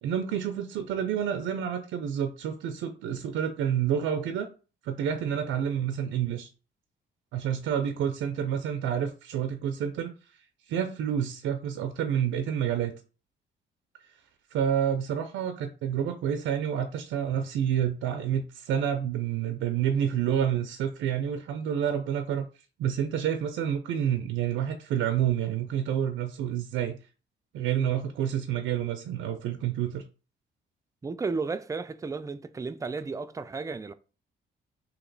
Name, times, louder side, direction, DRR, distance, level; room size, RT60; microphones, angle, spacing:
voice 1, 0.0-4.5 4.8-6.5 7.3-10.1 10.7-12.9 14.5-22.5 22.8-26.9 27.5-30.0, right 9 dB, 80° right, 0.5 m, -29 dB
voice 2, 31.0-33.9, right 4 dB, 15° right, 0.3 m, -33 dB
2.9 x 2.9 x 3.9 m
cardioid pair, 90°, 20 cm